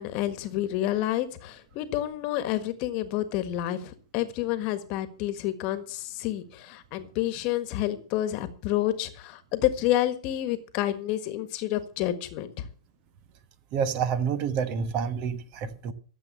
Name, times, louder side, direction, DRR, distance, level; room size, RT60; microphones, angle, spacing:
voice 1, 0.0-12.7, left 13 dB, 40° left, 1.6 m, -29 dB
voice 2, 13.7-15.9, right 7 dB, 35° right, 1.3 m, -28 dB
13.5 x 7.7 x 7.7 m
hypercardioid pair, 145°, 3 cm